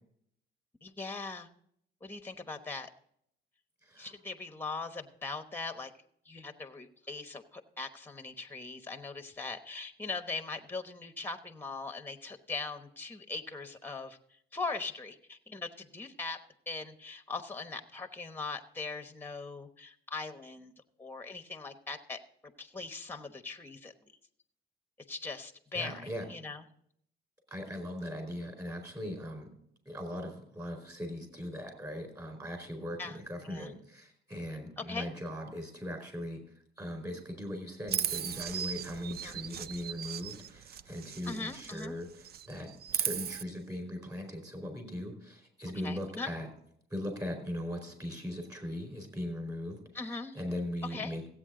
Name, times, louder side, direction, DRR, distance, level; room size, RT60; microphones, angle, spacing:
voice 1, 0.8-1.5 2.0-2.9 4.0-5.9 6.2-14.2 14.5-16.4 16.7-20.7 21.0-23.9 25.1-26.6 33.0-33.2 33.4-33.7 34.8-35.1 39.2-39.4 41.2-42.0 45.8-46.3 49.9-50.4 50.9-51.1, left 3 dB, 10° left, 7 dB, 1.1 m, -40 dB
voice 2, 3.8-4.1 25.7-26.2 27.5-29.5 29.9-36.4 36.8-46.5 46.9-49.8 50.3-51.3, left 1 dB, 15° right, 5 dB, 4.5 m, -39 dB
Chirp tweet, 37.9-41.9 42.2-43.4, right 9 dB, 50° right, 0.4 m, -37 dB
15.5 x 8.6 x 3.8 m, 0.69 s
cardioid pair, 90°, 20 cm